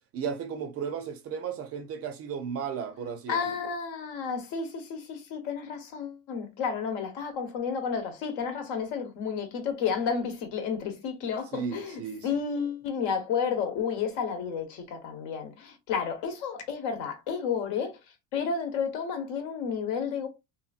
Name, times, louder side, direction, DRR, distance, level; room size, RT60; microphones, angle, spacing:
voice 1, 0.1-3.7 11.5-12.4, right 7 dB, 35° right, 0.4 m, -35 dB
voice 2, 3.3-18.0 18.3-20.3, left 6 dB, 75° left, 1.0 m, -31 dB
2.7 x 2.5 x 2.4 m
cardioid pair, 145°, 42 cm